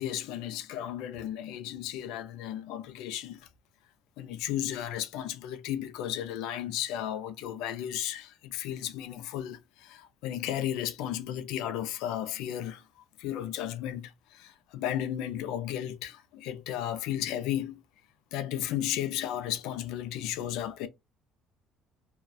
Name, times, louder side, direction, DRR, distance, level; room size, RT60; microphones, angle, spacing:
voice 1, 0.0-3.4 4.2-12.8 13.2-17.8 18.3-20.9, left 11 dB, 85° left, 0.4 m, -34 dB
2.3 x 2.1 x 2.5 m
cardioid pair, 130°, 0 cm